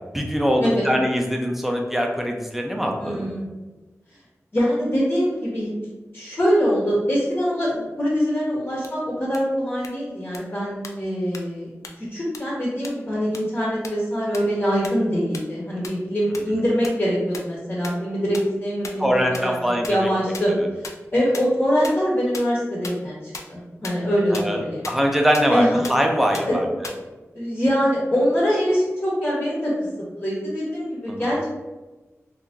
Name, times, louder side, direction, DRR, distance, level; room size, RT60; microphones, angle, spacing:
voice 1, 0.1-3.3 19.0-20.1 24.3-24.6 24.9-26.7 31.1-31.3, equal, 5° right, 1 dB, 0.5 m, -22 dB
voice 2, 3.0-3.4 4.5-5.7 6.1-11.7 12.1-19.5 19.9-20.5 21.1-24.9 25.5-25.8 26.4-26.6 27.3-29.7 30.2-31.5, equal, 40° left, -6 dB, 1.0 m, -23 dB
sound 1, 8.8-8.9 9.3-9.4 9.8-9.9 10.3-10.4 10.8-10.9 11.3-11.4 11.8-11.9 12.3-12.4 12.8-12.9 13.3-13.4 13.8-13.9 14.3-14.4 14.8-14.9 15.3-15.4 15.8-15.9 16.3-16.4 16.8-16.9 17.3-17.4 17.8-17.9 18.3-18.4 18.8-18.9 19.3-19.4 19.8-19.9 20.3-20.4 20.8-20.9 21.3-21.4 21.8-21.9 22.3-22.4 22.8-22.9 23.3-23.4 23.8-23.9 24.3-24.4 24.8-24.9 25.3-25.4 25.8-25.9 26.3-26.4 26.8-26.9, left 4 dB, 80° left, 0.4 m, -33 dB
2.8 x 2.6 x 3.6 m, 1.2 s
wide cardioid pair, 85°, 5 cm